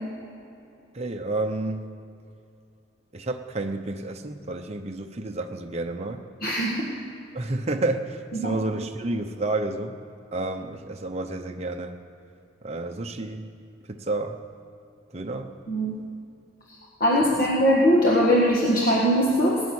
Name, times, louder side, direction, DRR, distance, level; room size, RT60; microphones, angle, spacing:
voice 1, 0.9-1.9 3.1-6.2 7.3-10.0 10.3-12.0 12.6-13.5 13.9-14.4 15.1-15.5 17.3-17.4, right 2 dB, 30° right, 4 dB, 0.7 m, -30 dB
voice 2, 6.4-6.9 8.4-8.6 15.7-15.9 17.0-19.6, equal, 45° left, -4 dB, 1.7 m, -21 dB
18.5 x 7.2 x 9.6 m, 2.6 s
head